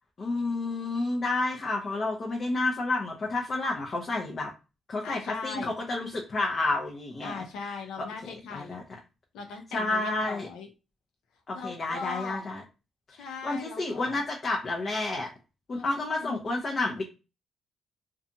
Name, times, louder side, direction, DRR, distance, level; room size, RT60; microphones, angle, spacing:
voice 1, 0.2-4.5 4.9-7.4 8.5-8.8 9.7-10.5 11.5-12.6 13.2-15.3 15.7-17.0, left 2 dB, 40° left, -1 dB, 0.6 m, -30 dB
voice 2, 5.0-5.7 7.2-8.8 9.3-10.7 11.5-12.5 13.2-14.2 15.7-15.9 16.2-16.4, left 5 dB, 85° left, 4 dB, 0.6 m, -39 dB
2.6 x 2.3 x 2.6 m, 0.30 s
cardioid pair, 90°, 0 cm